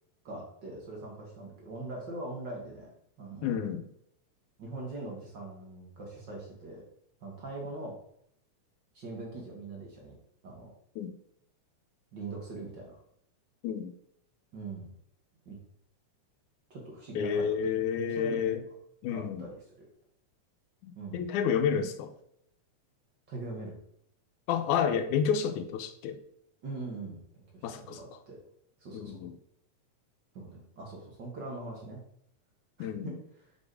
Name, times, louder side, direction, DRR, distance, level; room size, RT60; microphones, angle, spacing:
voice 1, 0.2-2.9 3.2-3.6 4.6-6.8 7.2-8.0 8.9-10.2 10.4-10.7 12.1-13.0 14.5-14.9 15.4-15.5 16.7-17.5 18.2-18.5 19.1-19.5 20.9-21.2 23.3-23.7 26.6-27.2 27.5-28.4 28.8-29.2 30.3-32.0 32.8-33.1, right 2 dB, 45° right, -1 dB, 1.7 m, -41 dB
voice 2, 3.4-3.9 11.0-11.1 13.6-13.9 17.2-18.6 19.0-19.5 20.8-22.1 24.5-26.2 27.6-28.0 28.9-29.3 32.8-33.2, left 7 dB, 90° left, 9 dB, 2.1 m, -30 dB
6.5 x 5.1 x 4.8 m, 0.72 s
omnidirectional pair, 3.4 m